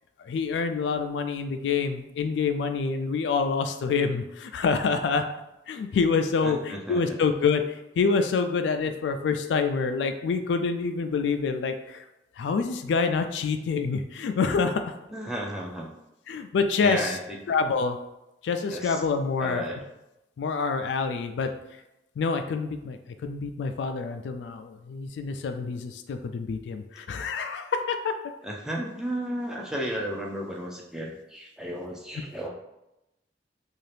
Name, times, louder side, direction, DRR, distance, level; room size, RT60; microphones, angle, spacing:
voice 1, 0.2-5.2 5.7-7.6 8.0-12.0 12.4-14.9 16.3-17.1 17.5-18.0 18.4-19.6 20.4-21.5 22.2-28.2, left 5 dB, 85° left, 7 dB, 0.3 m, -27 dB
voice 2, 6.4-7.0 15.1-15.9 16.8-17.4 18.7-19.0 19.4-19.8 21.4-21.5 28.4-32.5, equal, 5° right, -2 dB, 0.4 m, -33 dB
2.7 x 2.4 x 3.2 m, 0.90 s
head